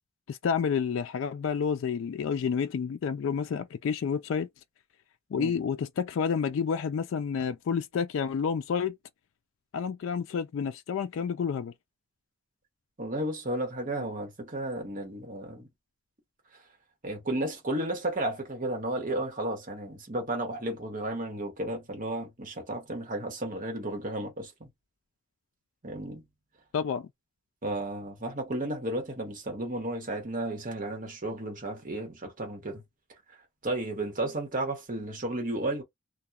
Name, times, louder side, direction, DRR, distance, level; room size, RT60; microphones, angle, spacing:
voice 1, 0.3-4.5 5.3-9.0 9.7-11.7 26.7-27.1, left 6 dB, 75° left, 0.3 m, -29 dB
voice 2, 13.0-15.7 17.0-24.7 25.8-26.3 27.6-32.8 33.3-33.4 33.6-35.8, right 1 dB, 40° right, 1.0 m, -33 dB
2.8 x 2.1 x 2.3 m
head